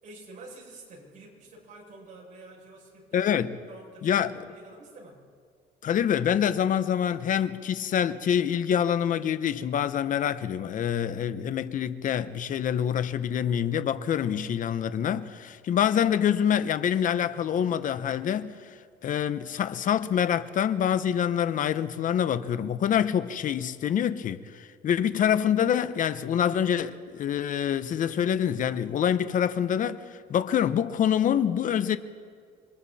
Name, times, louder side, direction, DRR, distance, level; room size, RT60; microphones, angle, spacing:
voice 1, 0.0-3.3 3.7-5.2, right 2 dB, 50° right, 6.8 m, -48 dB
voice 2, 3.1-3.6 4.0-4.3 5.8-18.6 19.0-32.0, left 9 dB, 50° left, 0.9 m, -26 dB
27.5 x 23.5 x 4.2 m
cardioid pair, 110°, 17 cm